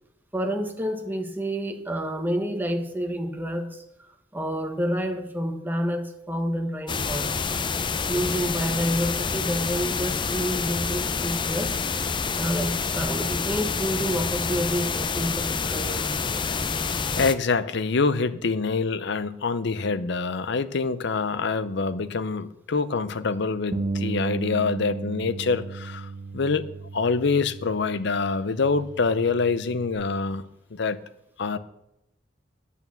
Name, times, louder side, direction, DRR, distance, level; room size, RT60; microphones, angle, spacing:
voice 1, 0.3-3.8 4.3-7.5 8.1-11.8 12.3-16.6, equal, 10° right, 4 dB, 1.1 m, -29 dB
sound 1, 6.9-17.4, left 5 dB, 25° left, 0.5 m, -27 dB
voice 2, 16.8-26.6 26.9-31.0 31.4-31.6, left 4 dB, 65° left, 14 dB, 0.6 m, -26 dB
Bass guitar, 23.7-30.0, right 4 dB, 75° right, 1.1 m, -35 dB
9.1 x 8.4 x 7.1 m, 0.83 s
head